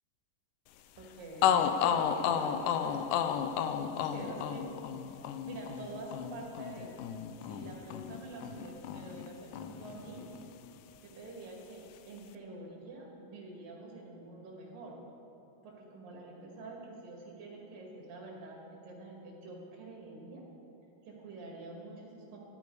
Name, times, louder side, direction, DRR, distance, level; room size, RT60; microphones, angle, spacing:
sound 1, 1.0-1.1 1.4-9.3 9.5-10.7, left 8 dB, 90° left, 1.8 m, -32 dB
voice 1, 1.0-3.3 3.5-4.7 5.4-7.0 7.4-10.3 11.0-15.0 15.6-20.5 21.0-22.4, right 2 dB, 65° right, -1 dB, 3.7 m, -46 dB
12.5 x 12.5 x 4.8 m, 2.9 s
omnidirectional pair, 4.3 m